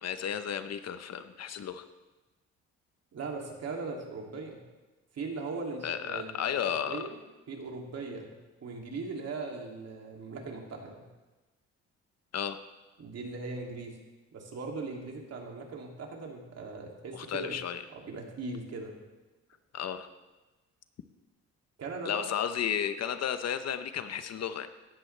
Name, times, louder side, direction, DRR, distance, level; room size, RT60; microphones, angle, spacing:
voice 1, 0.0-1.8 5.8-7.0 12.3-12.6 17.1-17.8 19.7-20.1 22.0-24.7, left 8 dB, 55° left, 10 dB, 0.9 m, -33 dB
voice 2, 3.1-4.6 5.1-7.2 7.5-8.3 8.6-11.1 13.0-14.0 14.3-17.6 17.9-19.0 21.8-22.3, right 3 dB, 55° right, 0 dB, 2.8 m, -39 dB
16.5 x 12.5 x 3.4 m, 1.2 s
cardioid pair, 90°, 30 cm